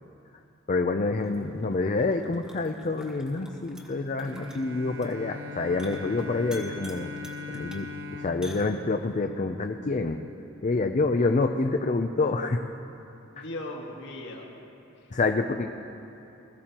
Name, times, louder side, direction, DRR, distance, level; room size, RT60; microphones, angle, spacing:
voice 1, 0.7-7.1 7.5-10.2 10.6-12.6 13.4-13.5 15.1-15.7, left 3 dB, 35° left, 5 dB, 0.5 m, -27 dB
sound 1, 1.2-9.2, equal, 5° right, 1.4 m, -49 dB
Bowed string instrument, 4.2-9.9, left 3 dB, 70° right, 0.8 m, -40 dB
voice 2, 13.2-14.5 15.0-15.1, left 1 dB, 60° left, 0 dB, 1.8 m, -40 dB
20.5 x 14.5 x 2.9 m, 2.8 s
head